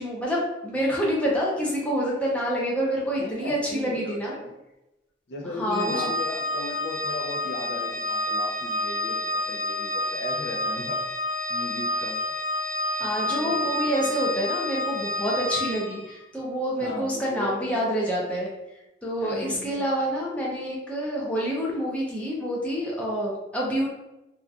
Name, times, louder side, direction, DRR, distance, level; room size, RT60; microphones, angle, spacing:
voice 1, 0.0-4.3 5.6-6.1 13.0-18.5 19.0-23.9, equal, 5° left, -5 dB, 0.5 m, -27 dB
voice 2, 3.1-4.6 5.3-11.2 11.5-12.2 13.0-14.1 16.8-17.8 19.2-19.9, left 1 dB, 70° left, 1 dB, 0.4 m, -36 dB
Organ, 5.7-16.1, left 1 dB, 45° right, 0.5 m, -29 dB
2.7 x 2.3 x 2.3 m, 0.94 s
head